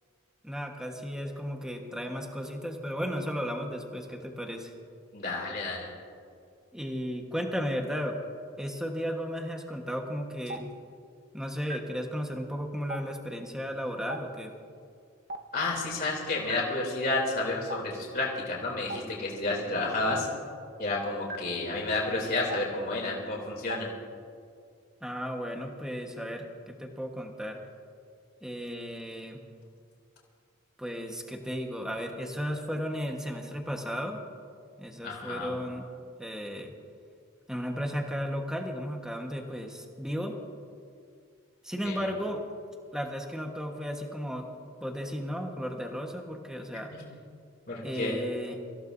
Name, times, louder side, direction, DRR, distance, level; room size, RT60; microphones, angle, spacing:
voice 1, 0.4-4.7 6.7-8.2 8.6-10.7 11.3-14.5 25.0-27.6 28.4-29.4 30.8-34.2 34.8-35.8 36.2-36.7 37.5-40.4 41.6-42.4 42.9-44.5 44.8-46.9 47.8-48.6, equal, 5° right, 2 dB, 1.3 m, -34 dB
voice 2, 5.1-5.9 15.5-20.3 20.8-23.9 35.0-35.5 41.8-42.1 46.9-47.0 47.7-48.2, left 2 dB, 45° left, -3 dB, 3.1 m, -31 dB
Stream, 10.5-10.6 11.7-11.8 12.9-13.0 14.1-14.2 15.3-15.4 16.5-16.6 17.7-17.8 18.9-19.0 20.1-20.2 21.3-21.4 22.5-22.6 23.7-23.8, right 1 dB, 50° right, 1.2 m, -36 dB
25.5 x 15.5 x 2.7 m, 2.3 s
head